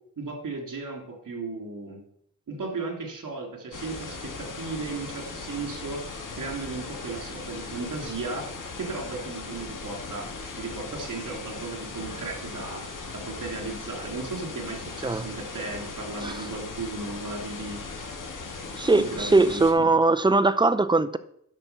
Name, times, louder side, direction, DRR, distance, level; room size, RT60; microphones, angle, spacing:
voice 1, 0.2-2.0 2.5-6.0 6.4-8.4 8.8-10.3 10.6-12.8 13.1-17.8 18.9-19.8, right 3 dB, 70° right, 2 dB, 3.0 m, -35 dB
sound 1, 3.7-19.7, left 4 dB, 70° left, 2.1 m, -38 dB
voice 2, 18.7-21.2, right 3 dB, 15° right, 12 dB, 0.5 m, -21 dB
11.0 x 6.1 x 6.8 m, 0.73 s
wide cardioid pair, 125°, 32 cm